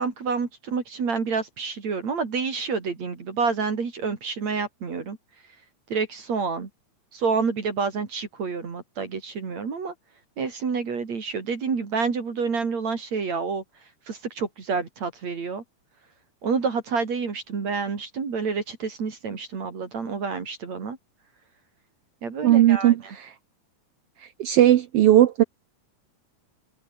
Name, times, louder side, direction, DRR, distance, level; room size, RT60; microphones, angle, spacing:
voice 1, 0.0-5.2 5.9-6.7 7.1-9.9 10.4-13.6 14.1-15.6 16.4-21.0 22.2-23.1, right 5 dB, 55° right, 4.6 m, -28 dB
voice 2, 22.4-23.3 24.4-25.4, right 12 dB, 75° right, 1.4 m, -17 dB
omnidirectional pair, 3.7 m